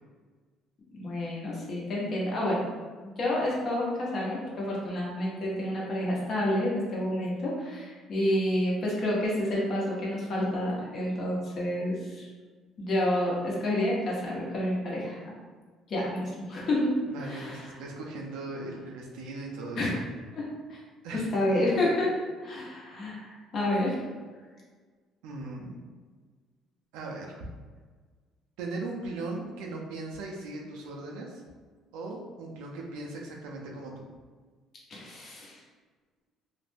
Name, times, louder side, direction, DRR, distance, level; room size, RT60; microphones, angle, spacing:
voice 1, 0.9-2.7 3.0-12.3 12.8-15.2 15.9-16.9 17.2-17.7 19.7-19.9 20.3-20.8 21.1-22.1 22.4-24.0 34.9-35.6, left 1 dB, 50° left, -4 dB, 0.9 m, -29 dB
voice 2, 17.1-19.9 21.0-21.3 25.2-25.9 26.9-27.5 28.6-31.4 31.9-34.0, right 2 dB, 90° right, -1 dB, 0.4 m, -38 dB
2.4 x 2.1 x 3.3 m, 1.5 s
cardioid pair, 105°, 0 cm